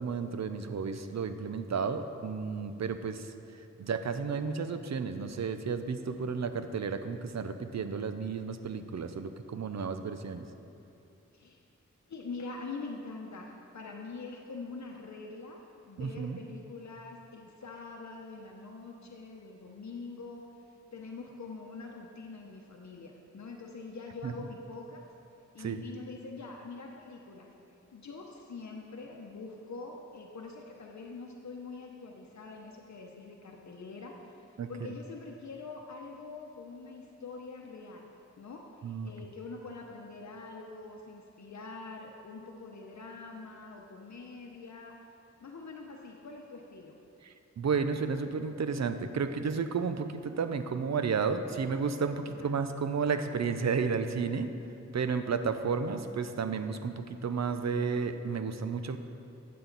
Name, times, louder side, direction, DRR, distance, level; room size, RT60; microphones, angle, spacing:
voice 1, 0.0-3.3 3.8-10.4 16.0-16.4 24.2-24.3 25.6-25.8 34.6-34.7 38.8-39.1 47.2-54.5 54.9-59.0, right 5 dB, 65° right, 9 dB, 0.6 m, -32 dB
voice 2, 12.1-15.6 15.8-20.4 20.9-25.0 25.5-27.5 27.9-34.4 34.7-45.0 45.4-46.9 52.3-52.6, left 3 dB, 70° left, 0 dB, 0.8 m, -44 dB
12.5 x 7.6 x 4.0 m, 2.8 s
wide cardioid pair, 105°, 29 cm